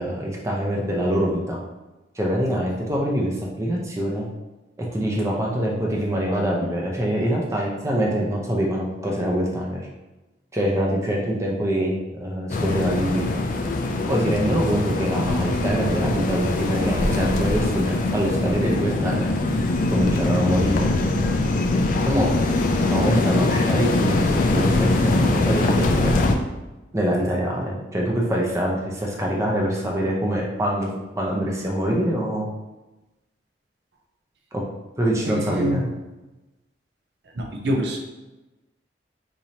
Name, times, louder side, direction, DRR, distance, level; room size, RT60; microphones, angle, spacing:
voice 1, 0.0-1.6 2.2-4.3 4.8-9.9 10.5-13.3 14.1-19.3 19.9-20.9 22.1-22.3 22.9-26.2 26.9-30.9 31.2-32.5 34.5-34.6 35.0-35.8, equal, 15° right, -2 dB, 0.6 m, -24 dB
sound 1, 12.5-26.3, left 2 dB, 45° left, 0.4 m, -22 dB
voice 2, 35.2-35.9 37.3-38.0, equal, 65° right, 1 dB, 0.6 m, -25 dB
4.7 x 2.7 x 2.8 m, 1.1 s
head